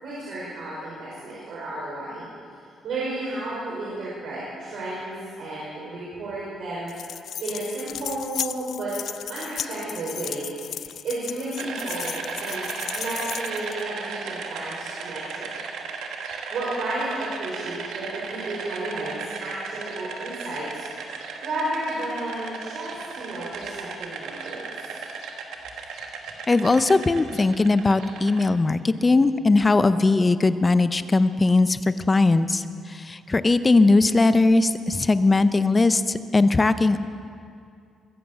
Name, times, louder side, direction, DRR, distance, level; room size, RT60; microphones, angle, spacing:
voice 1, 0.0-2.3 2.8-6.9 7.4-8.9 9.3-12.7 12.9-15.5 16.5-20.8 21.4-25.0, right 2 dB, 65° right, -7 dB, 4.7 m, -32 dB
sound 1, 6.9-13.8, left 9 dB, 70° left, 0.4 m, -35 dB
sound 2, 11.6-28.5, right 5 dB, 80° right, 1.4 m, -36 dB
voice 2, 26.5-32.6 32.9-37.0, left 3 dB, 25° left, 12 dB, 0.6 m, -19 dB
22.0 x 7.8 x 7.8 m, 2.3 s
cardioid pair, 90°, 0 cm